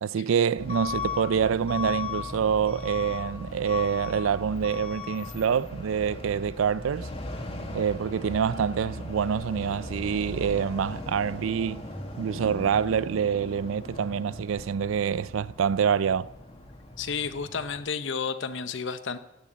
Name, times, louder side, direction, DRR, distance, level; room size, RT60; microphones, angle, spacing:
voice 1, 0.0-7.1 7.7-11.9 12.2-16.3, right 7 dB, 85° right, 0.4 m, -26 dB
Truck / Alarm, 0.6-17.8, left 3 dB, 30° left, 1.8 m, -38 dB
voice 2, 17.0-19.2, left 5 dB, 65° left, 0.7 m, -31 dB
16.5 x 6.9 x 7.4 m
head